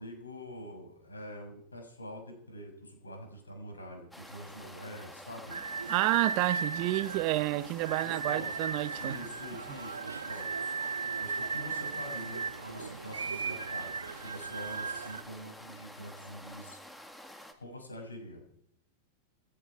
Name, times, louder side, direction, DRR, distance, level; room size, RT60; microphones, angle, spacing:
voice 1, 0.0-5.6 8.0-8.6 9.0-10.8 11.2-16.8 17.6-18.4, equal, 75° left, 7.0 m, -45 dB
sound 1, 4.1-17.5, equal, 5° left, 2.2 m, -50 dB
sound 2, 5.5-15.2, right 5 dB, 75° right, 0.8 m, -37 dB
voice 2, 5.9-9.2, right 19 dB, 45° right, 1.0 m, -29 dB
28.5 x 10.5 x 4.6 m
figure-of-eight pair, 90°, 0 cm